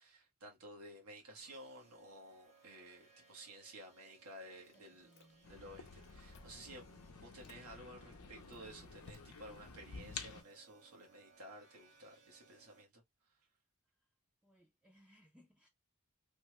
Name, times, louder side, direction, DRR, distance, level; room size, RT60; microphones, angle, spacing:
voice 1, 0.0-5.1 5.5-6.8 7.2-13.0, right 1 dB, 80° right, 1.2 m, -54 dB
sound 1, 1.4-12.8, right 4 dB, 50° right, 1.6 m, -67 dB
Chewing mastication, 4.6-5.6 5.8-6.7 7.2-7.6 8.2-9.6, left 3 dB, 55° left, 0.7 m, -62 dB
voice 2, 4.7-5.5 14.4-15.7, equal, 5° right, 0.5 m, -67 dB
sound 2, 5.4-10.4, left 5 dB, 90° left, 0.6 m, -51 dB
3.2 x 2.1 x 3.0 m
head